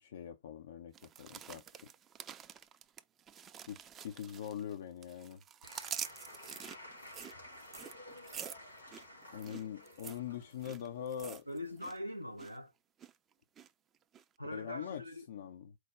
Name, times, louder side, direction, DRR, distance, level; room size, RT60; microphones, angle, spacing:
voice 1, 0.0-1.6 3.7-5.4 9.3-11.5 14.4-15.0 15.3-15.8, left 9 dB, 60° left, 0.4 m, -43 dB
sound 1, 0.9-4.8 5.0-12.0 12.2-12.6 13.0-13.7 14.1-14.2, right 8 dB, 25° right, 0.4 m, -47 dB
Applause / Crowd, 5.6-11.9, left 1 dB, 75° left, 2.2 m, -53 dB
voice 2, 11.5-12.7 14.4-15.3, left 1 dB, 90° right, 0.5 m, -42 dB
4.6 x 2.1 x 4.6 m
figure-of-eight pair, 100°, 0 cm